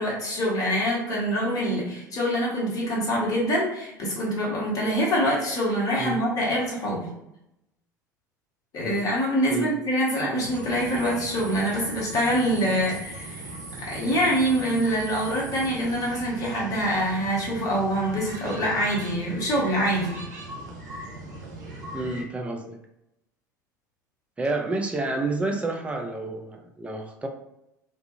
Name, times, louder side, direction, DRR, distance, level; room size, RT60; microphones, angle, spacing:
voice 1, 0.0-7.1 8.7-13.5 13.8-20.2, equal, 35° left, -4 dB, 1.2 m, -25 dB
sound 1, 10.4-22.2, right 2 dB, 70° right, 0.7 m, -39 dB
voice 2, 21.9-22.8 24.4-27.3, right 2 dB, 10° right, 2 dB, 0.5 m, -29 dB
2.5 x 2.3 x 2.7 m, 0.82 s
figure-of-eight pair, 70°, 10 cm